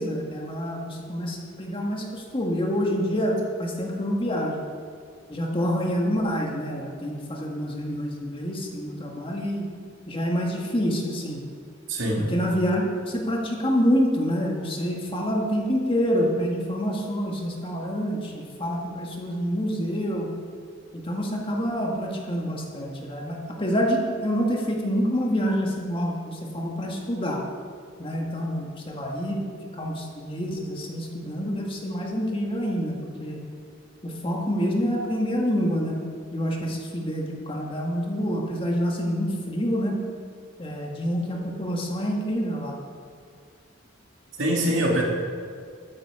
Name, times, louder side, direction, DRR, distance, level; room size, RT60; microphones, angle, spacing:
voice 1, 0.0-4.6 5.3-9.7 10.1-11.4 12.3-20.3 20.9-27.4 28.0-29.4 29.7-33.4 34.0-36.0 36.3-40.0 40.6-42.8, equal, 25° left, -1 dB, 1.7 m, -27 dB
voice 2, 11.9-12.2 44.4-45.0, right 1 dB, 70° right, -1 dB, 2.4 m, -23 dB
13.5 x 9.0 x 4.9 m, 2.1 s
head